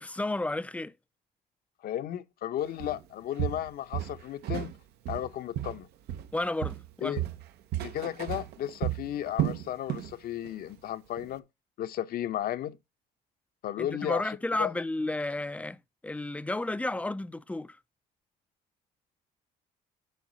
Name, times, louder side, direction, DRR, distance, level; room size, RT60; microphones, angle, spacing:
voice 1, 0.0-0.9 6.3-7.2 13.8-17.8, left 2 dB, 10° left, 0.4 m, -32 dB
voice 2, 1.8-4.7 5.1-5.9 7.0-7.2 7.8-11.4 11.8-12.8 13.6-14.2 14.6-14.7, left 11 dB, 65° left, 0.9 m, -34 dB
Walk footsteps, 2.8-3.0 3.4-4.8 5.1-6.4 6.6-10.1 10.4-10.7 11.2-11.3, right 12 dB, 75° right, 0.9 m, -33 dB
9.3 x 4.7 x 4.1 m
cardioid pair, 110°, 17 cm